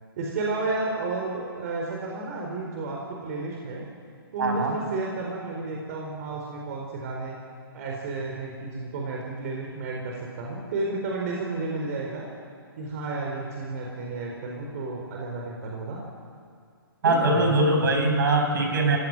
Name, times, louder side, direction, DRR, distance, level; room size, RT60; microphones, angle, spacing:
voice 1, 0.2-3.8 4.3-7.4 7.7-12.2 12.8-16.0 17.0-17.5, right 3 dB, 40° right, -1 dB, 4.6 m, -32 dB
voice 2, 4.4-4.8 17.0-19.0, right 2 dB, 55° right, 3 dB, 5.6 m, -22 dB
27.5 x 17.5 x 9.8 m, 2.2 s
figure-of-eight pair, 135°, 13 cm